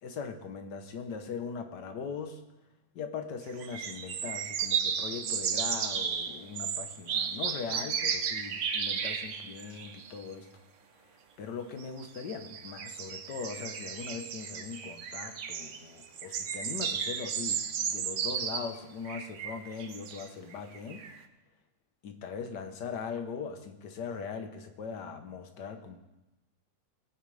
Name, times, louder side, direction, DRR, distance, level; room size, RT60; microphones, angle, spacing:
voice 1, 0.0-2.4 2.9-10.5 11.4-21.0 22.0-26.0, left 5 dB, 75° left, 7 dB, 1.7 m, -40 dB
sound 1, 3.5-10.2 11.8-18.7 19.0-21.2, right 7 dB, 55° right, 0.9 m, -34 dB
20.5 x 9.1 x 3.3 m, 1.0 s
omnidirectional pair, 1.8 m